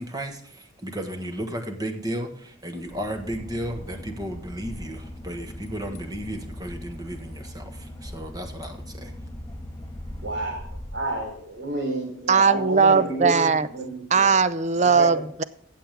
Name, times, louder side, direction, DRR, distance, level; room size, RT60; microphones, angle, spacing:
voice 1, 0.0-9.1, right 1 dB, 20° right, 1.4 m, -34 dB
Boat Water vehicle / Engine, 2.8-11.7, left 1 dB, 15° left, 2.2 m, -40 dB
voice 2, 10.1-10.6 10.9-14.4 14.8-15.2, right 1 dB, 75° right, 4.2 m, -30 dB
voice 3, 12.3-13.7 14.1-15.4, right 5 dB, 40° right, 0.6 m, -19 dB
15.5 x 7.5 x 3.5 m
head